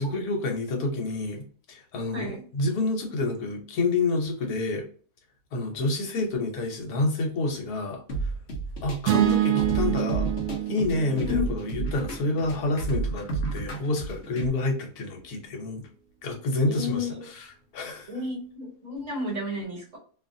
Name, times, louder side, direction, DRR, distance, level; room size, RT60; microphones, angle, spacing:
voice 1, 0.0-4.8 5.5-8.0 8.8-10.3 10.7-15.8 16.2-18.1, left 2 dB, 70° left, 1.3 m, -28 dB
sound 1, 8.1-14.5, right 3 dB, 55° left, 0.8 m, -31 dB
sound 2, 9.1-13.3, right 14 dB, 85° right, 1.2 m, -28 dB
voice 2, 16.7-17.2 18.1-20.0, left 3 dB, 55° right, 1.4 m, -31 dB
2.9 x 2.4 x 2.5 m
omnidirectional pair, 1.7 m